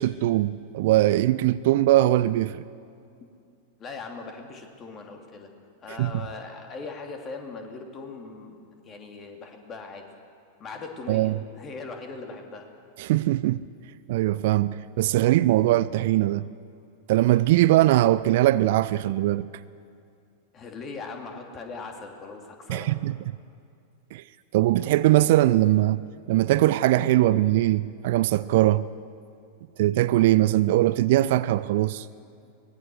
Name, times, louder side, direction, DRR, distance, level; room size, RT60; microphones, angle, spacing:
voice 1, 0.0-2.6 5.9-6.1 11.1-11.3 13.0-13.6 14.1-16.5 17.1-19.5 22.7-23.4 24.1-24.2 24.5-26.0 26.3-28.9 29.8-32.1, right 15 dB, 50° right, 0.5 m, -21 dB
voice 2, 3.8-5.5 5.8-10.0 10.6-12.7 20.5-23.0, left 4 dB, 25° left, 2.9 m, -39 dB
23.5 x 19.5 x 6.4 m
figure-of-eight pair, 90°, 0 cm